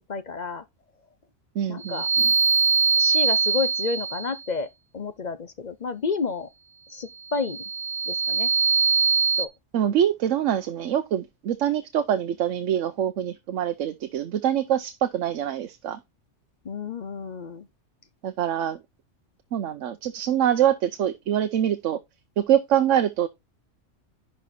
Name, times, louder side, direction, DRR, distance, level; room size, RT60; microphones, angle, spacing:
voice 1, 0.1-0.6 1.7-2.1 3.0-4.7 4.9-6.5 6.9-7.6 8.1-8.5 9.4-9.5 16.6-17.7, left 5 dB, 45° left, 0.7 m, -30 dB
voice 2, 1.6-2.3 9.7-16.0 18.2-18.8 19.5-22.0 22.4-23.3, right 10 dB, 80° right, 1.0 m, -24 dB
sound 1, 1.8-4.4 7.3-9.5, right 5 dB, 55° right, 1.1 m, -22 dB
11.0 x 4.4 x 4.2 m
omnidirectional pair, 1.3 m